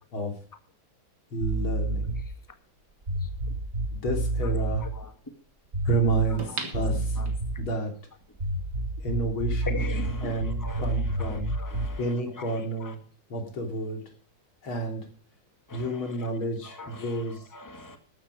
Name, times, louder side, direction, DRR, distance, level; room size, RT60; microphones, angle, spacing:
voice 1, 1.3-2.2 3.9-4.8 5.9-7.2 7.6-7.9 9.0-9.8 10.2-11.5 12.0-13.0 13.3-14.0 14.6-15.1 15.7-17.5, right 2 dB, 80° left, 3.9 m, -30 dB
sound 1, 1.4-2.4 3.0-5.0 5.7-6.5 6.7-7.7 8.4-12.0, right 2 dB, 35° right, 4.4 m, -29 dB
sound 2, 2.8-2.9 6.4-7.7 8.2-8.3, right 3 dB, 55° right, 3.1 m, -37 dB
voice 2, 4.8-5.1 6.3-6.7 7.2-7.3 9.6-12.9 15.7-16.4 16.6-18.0, left 3 dB, 10° left, 1.7 m, -41 dB
14.0 x 12.0 x 4.9 m
omnidirectional pair, 2.2 m